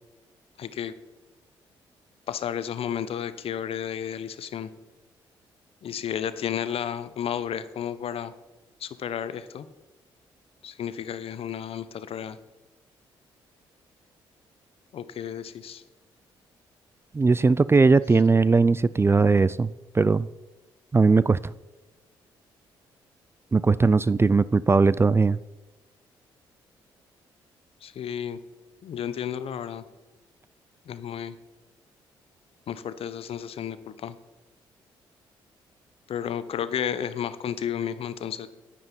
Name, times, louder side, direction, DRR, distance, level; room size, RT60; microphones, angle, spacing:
voice 1, 0.6-0.9 2.3-4.7 5.8-8.3 8.8-9.7 10.6-12.4 14.9-15.8 27.8-28.4 28.8-29.8 30.9-31.4 32.7-34.2 36.1-38.5, left 9 dB, 60° left, 0.8 m, -32 dB
voice 2, 17.1-20.3 20.9-21.5 23.5-25.4, right 4 dB, 25° right, 0.4 m, -19 dB
10.0 x 9.5 x 5.3 m
hypercardioid pair, 50°, 11 cm